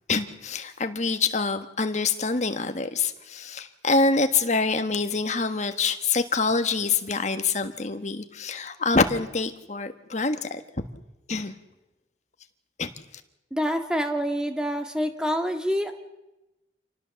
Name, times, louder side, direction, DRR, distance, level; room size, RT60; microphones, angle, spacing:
voice 1, 0.1-10.6 11.3-11.5 12.8-12.9, left 4 dB, 40° left, 8 dB, 1.4 m, -25 dB
voice 2, 13.5-15.9, equal, 5° right, 5 dB, 1.7 m, -26 dB
27.5 x 19.0 x 7.0 m, 0.97 s
head